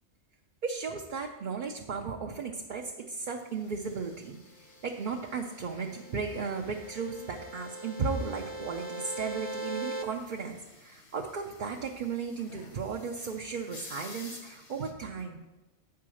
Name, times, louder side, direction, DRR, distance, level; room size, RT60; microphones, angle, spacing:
voice 1, 0.6-4.4 4.8-15.4, right 5 dB, 50° right, 1 dB, 0.7 m, -35 dB
sound 1, 3.3-14.9, left 3 dB, 70° left, 1.5 m, -54 dB
sound 2, 5.1-10.0, right 2 dB, 15° left, 0.5 m, -40 dB
8.3 x 4.7 x 6.3 m, 1.1 s
omnidirectional pair, 1.2 m